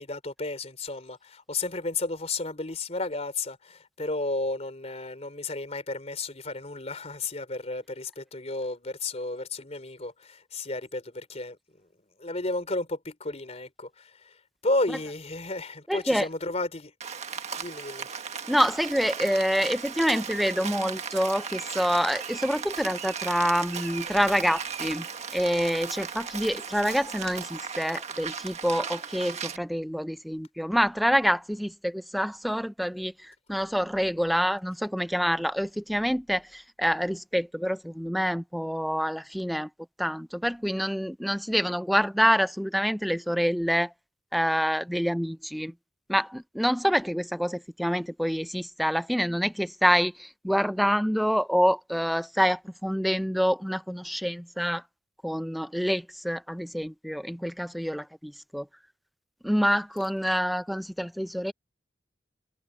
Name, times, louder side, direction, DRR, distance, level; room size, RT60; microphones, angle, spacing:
voice 1, 0.0-11.9 12.2-16.9 17.6-18.1, left 2 dB, 40° left, 3.8 m, -33 dB
voice 2, 15.9-16.3 18.5-25.1 25.3-39.7 40.0-43.9 44.3-45.7 46.1-54.8 55.2-58.7 59.4-61.5, equal, ahead, 0.5 m, -27 dB
Rain, 17.0-29.6, right 6 dB, 40° right, 1.6 m, -36 dB
head